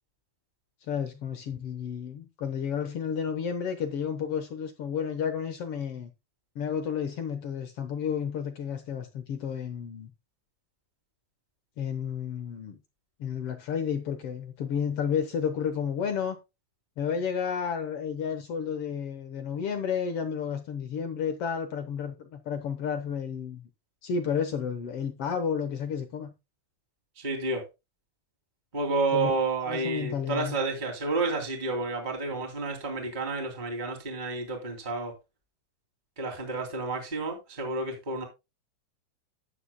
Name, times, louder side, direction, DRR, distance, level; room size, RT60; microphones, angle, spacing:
voice 1, 0.9-6.1 6.5-10.1 11.8-12.8 13.2-16.4 17.0-23.6 24.0-26.3 29.1-29.3 29.7-30.6, left 7 dB, 60° left, 1.7 m, -31 dB
voice 2, 27.2-27.6 28.7-35.1 36.2-38.2, right 3 dB, 15° right, 2.5 m, -30 dB
12.5 x 10.0 x 2.2 m
omnidirectional pair, 3.6 m